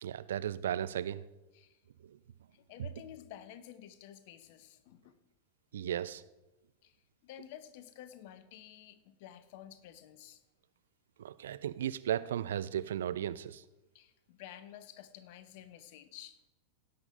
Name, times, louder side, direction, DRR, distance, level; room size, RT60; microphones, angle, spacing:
voice 1, 0.0-1.2 5.7-6.2 11.2-13.6, right 10 dB, 60° right, 15 dB, 0.4 m, -35 dB
voice 2, 2.5-5.2 6.8-7.0 7.2-10.4 13.9-16.4, left 11 dB, 50° left, 13 dB, 0.9 m, -51 dB
17.0 x 5.9 x 5.1 m, 1.0 s
figure-of-eight pair, 90°, 0 cm